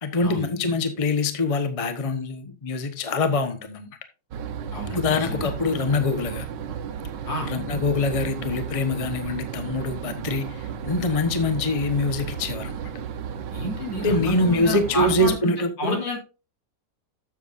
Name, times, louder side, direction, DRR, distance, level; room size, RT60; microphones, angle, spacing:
voice 1, 0.0-3.9 4.9-6.5 7.5-12.7 14.0-16.0, left 2 dB, 25° left, 0.8 m, -24 dB
sound 1, 4.3-15.4, right 8 dB, 70° right, 1.5 m, -33 dB
voice 2, 4.7-5.5 7.3-7.5 13.5-15.5 15.8-16.2, left 1 dB, 80° left, 4.1 m, -30 dB
12.5 x 7.5 x 2.5 m
omnidirectional pair, 2.0 m